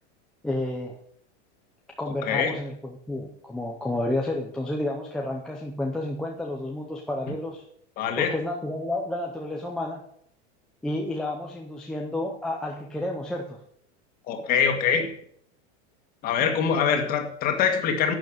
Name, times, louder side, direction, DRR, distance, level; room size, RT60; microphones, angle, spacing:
voice 1, 0.4-1.0 2.0-7.6 8.2-10.0 10.8-13.6, left 1 dB, ahead, -1 dB, 0.5 m, -30 dB
voice 2, 2.2-2.6 8.0-8.3 14.3-15.1 16.2-18.1, left 7 dB, 25° left, 5 dB, 1.8 m, -24 dB
11.5 x 7.9 x 8.9 m, 0.68 s
supercardioid pair, 180°, 35 cm